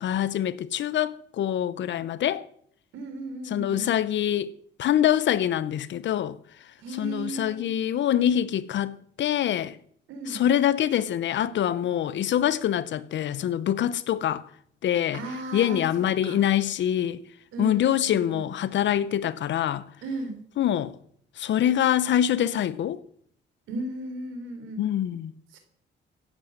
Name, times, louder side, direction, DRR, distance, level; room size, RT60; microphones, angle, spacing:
voice 1, 0.0-2.4 3.5-4.5 4.8-6.4 7.0-9.8 10.3-14.4 14.8-15.2 15.5-17.2 17.6-19.8 20.6-20.9 21.4-23.0 24.8-25.3, left 10 dB, 70° left, 0.9 m, -25 dB
voice 2, 2.9-3.9 6.8-7.7 10.1-10.4 15.1-15.9 16.2-16.4 17.5-18.5 20.0-20.4 23.7-24.9 25.5-25.6, right 2 dB, 80° right, 3.8 m, -36 dB
16.0 x 8.3 x 6.6 m
cardioid pair, 90°, 20 cm